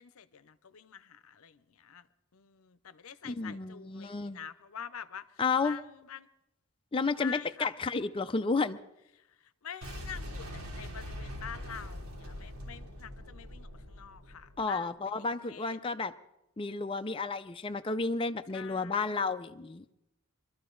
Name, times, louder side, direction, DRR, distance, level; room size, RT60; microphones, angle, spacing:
voice 1, 0.0-2.1 2.3-6.3 7.1-7.7 9.1-15.0 15.4-15.8 18.5-19.1, left 8 dB, 75° left, 0.7 m, -46 dB
voice 2, 3.2-4.4 5.4-5.8 6.9-8.8 14.6-16.1 16.6-19.8, left 4 dB, 25° left, 0.4 m, -32 dB
Boom, 9.8-14.7, equal, 85° right, 3.1 m, -42 dB
23.5 x 13.0 x 3.9 m
head